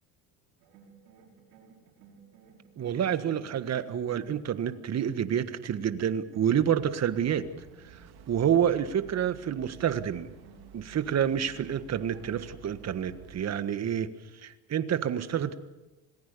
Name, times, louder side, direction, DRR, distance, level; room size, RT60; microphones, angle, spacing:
sound 1, 0.6-5.8 6.3-7.9 9.0-12.9, right 5 dB, 75° right, 6.2 m, -56 dB
voice 1, 2.8-7.4 7.9-8.0 8.3-10.3 10.7-14.1 14.4-15.5, right 9 dB, 35° right, 11 dB, 1.6 m, -28 dB
sound 2, 6.5-13.4, right 5 dB, 50° right, 3.3 m, -52 dB
27.5 x 19.0 x 6.9 m, 1.1 s
supercardioid pair, 110°, 48 cm